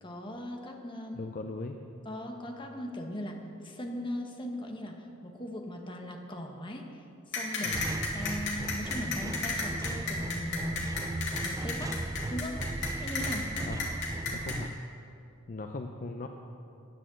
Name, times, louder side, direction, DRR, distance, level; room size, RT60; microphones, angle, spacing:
voice 1, 0.0-1.2 2.0-7.0 7.3-12.0 12.3-12.7 13.0-13.5, equal, 25° left, 2 dB, 1.3 m, -39 dB
voice 2, 1.1-1.8 7.6-7.9 13.7-13.8 14.3-14.8 15.5-16.3, left 3 dB, 40° left, 4 dB, 0.6 m, -39 dB
sound 1, 7.3-14.6, left 4 dB, 60° left, 2.5 m, -33 dB
sound 2, 7.7-14.7, right 2 dB, 15° right, 0.3 m, -37 dB
10.0 x 10.0 x 7.5 m, 2.7 s
head